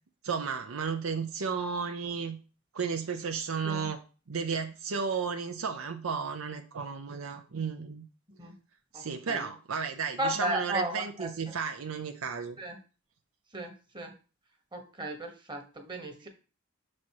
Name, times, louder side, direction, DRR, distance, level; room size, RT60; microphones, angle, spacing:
voice 1, 0.2-2.4 2.7-4.0 4.3-8.1 8.9-12.6 16.0-16.1, right 5 dB, 75° right, 6 dB, 0.6 m, -33 dB
voice 2, 8.9-9.5 10.2-11.3 12.6-12.8 13.5-14.1 14.7-16.3, right 1 dB, 20° right, 5 dB, 1.2 m, -35 dB
6.2 x 4.3 x 4.5 m, 0.35 s
head